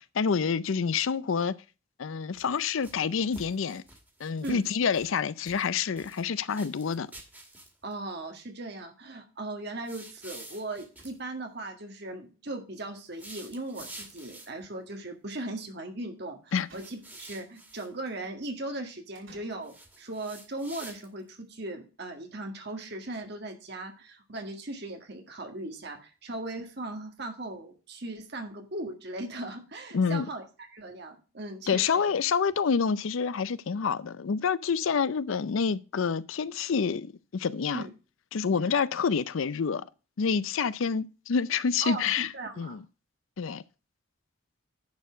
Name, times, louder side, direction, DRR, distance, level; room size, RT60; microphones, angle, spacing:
voice 1, 0.0-1.5 2.0-3.8 4.2-7.1 16.5-16.7 29.9-30.3 31.7-37.8 38.3-39.8 40.2-42.3 42.6-42.8 43.4-43.6, left 6 dB, 70° left, 0.5 m, -28 dB
sound 1, 2.3-3.0 3.3-5.2 5.5-6.2 6.5-7.9 9.8-11.1 13.1-14.7 16.7-17.9 19.6-21.3, right 1 dB, 10° right, 2.1 m, -48 dB
sound 2, 3.3-4.3 4.6-4.7 5.0-5.1 5.3-5.4 6.6-6.8 7.1-7.4 8.3-8.4 8.7-8.8 10.5-10.7 11.0-11.5 13.2-13.3 13.8-14.6 16.6-17.4 19.1-20.0, right 2 dB, 70° right, 6.3 m, -59 dB
voice 2, 7.8-31.9 37.7-37.9 39.7-39.8 41.8-42.8, right 2 dB, 50° right, 1.8 m, -38 dB
10.5 x 4.5 x 6.1 m
head